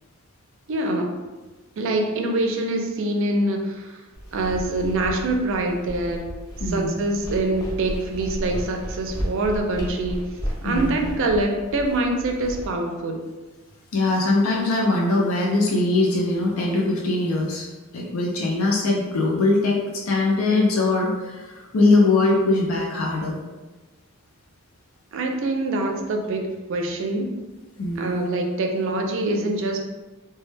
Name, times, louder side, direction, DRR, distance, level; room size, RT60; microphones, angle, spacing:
voice 1, 0.7-1.1 1.8-4.0 4.3-6.3 6.7-10.2 10.6-13.2 25.1-27.4 28.0-29.8, right 2 dB, 65° right, 3 dB, 0.4 m, -25 dB
sound 1, 4.1-12.7, equal, 15° left, 0.4 m, -33 dB
voice 2, 6.6-7.0 10.6-11.0 13.9-17.7 17.9-23.4 27.8-28.3, left 2 dB, 85° left, -2 dB, 0.5 m, -21 dB
2.1 x 2.0 x 3.2 m, 1.2 s
head